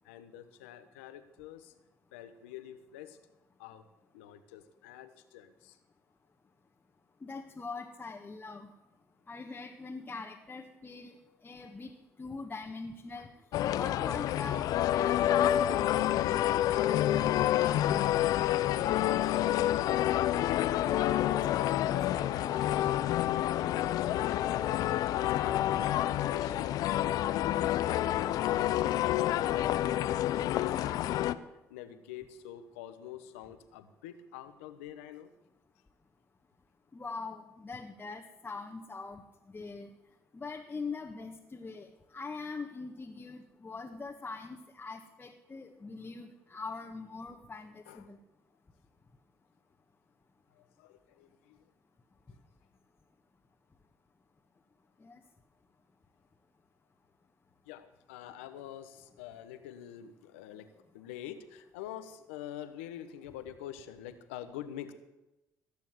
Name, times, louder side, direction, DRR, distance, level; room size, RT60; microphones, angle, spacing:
voice 1, 0.0-1.7 2.1-3.2 3.6-3.8 4.1-5.8 13.1-13.3 18.1-25.9 26.3-35.3 47.9-48.2 50.5-51.6 57.6-64.9, left 10 dB, 90° left, 10 dB, 1.1 m, -47 dB
voice 2, 7.2-8.7 9.3-13.3 13.7-15.5 15.8-16.5 36.9-39.9 40.3-48.2 55.0-55.2, left 4 dB, 25° left, 0 dB, 1.6 m, -43 dB
sound 1, 13.5-31.3, left 12 dB, 70° left, 0.6 m, -28 dB
18.0 x 7.1 x 8.0 m, 0.97 s
hypercardioid pair, 60°, 7 cm